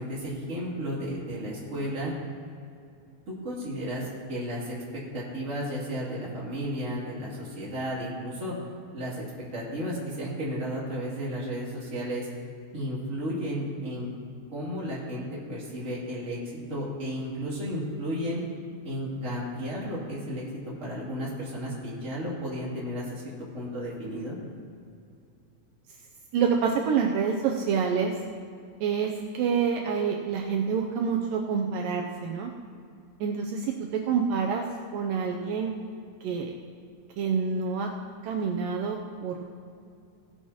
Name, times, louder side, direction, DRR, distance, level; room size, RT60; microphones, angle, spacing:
voice 1, 0.0-2.1 3.3-4.7 5.1-8.5 8.9-9.2 9.5-12.3 12.7-14.1 14.5-18.4 18.8-24.4, equal, 25° right, -7 dB, 2.6 m, -33 dB
voice 2, 26.3-28.2 28.8-32.5 33.2-34.6 34.9-35.7 36.2-36.5 37.2-37.9 38.2-39.5, right 6 dB, 80° right, 1 dB, 2.1 m, -27 dB
17.0 x 9.2 x 2.9 m, 2.5 s
omnidirectional pair, 4.3 m